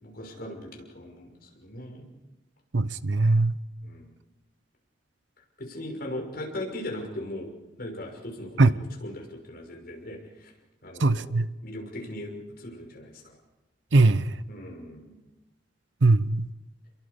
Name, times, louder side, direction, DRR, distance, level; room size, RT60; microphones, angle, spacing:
voice 1, 0.0-2.1 3.8-4.1 5.6-7.5 7.8-10.5 10.8-11.3 11.6-13.4 14.5-15.2, left 1 dB, 55° left, 6.0 m, -39 dB
voice 2, 2.7-3.5 8.6-8.7 11.0-11.5 13.9-14.3 16.0-16.5, right 2 dB, 80° right, 0.8 m, -20 dB
30.0 x 22.5 x 5.2 m
head